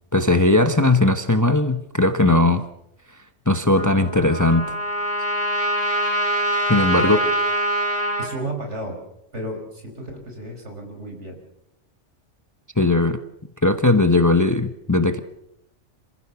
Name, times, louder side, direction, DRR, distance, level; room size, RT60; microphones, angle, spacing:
voice 1, 0.1-2.7 3.5-4.7 6.7-7.2 12.8-13.2 13.6-15.2, left 2 dB, 15° left, 9 dB, 1.0 m, -18 dB
Trumpet, 3.8-8.3, right 1 dB, 10° right, 6.0 m, -24 dB
voice 2, 6.9-7.3 8.2-9.0 9.3-11.4, right 1 dB, 70° right, 3 dB, 5.4 m, -32 dB
27.0 x 15.5 x 7.0 m, 0.80 s
omnidirectional pair, 1.2 m